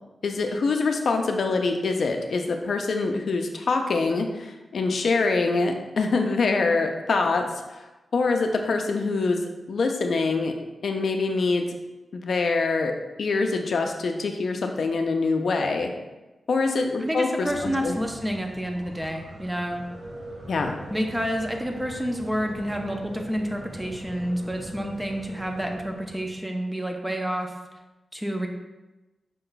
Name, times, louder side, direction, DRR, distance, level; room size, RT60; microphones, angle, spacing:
voice 1, 0.2-7.8 8.1-9.4 9.7-10.5 10.8-11.7 12.1-12.9 13.2-15.9 16.5-18.0 20.5-20.7, left 3 dB, 65° left, 4 dB, 0.4 m, -24 dB
voice 2, 17.0-19.8 20.9-27.5 28.1-28.5, equal, 10° right, 3 dB, 0.5 m, -29 dB
sound 1, 17.4-26.4, right 1 dB, 85° right, 1.3 m, -42 dB
5.2 x 2.2 x 3.9 m, 1.1 s
wide cardioid pair, 135°, 0 cm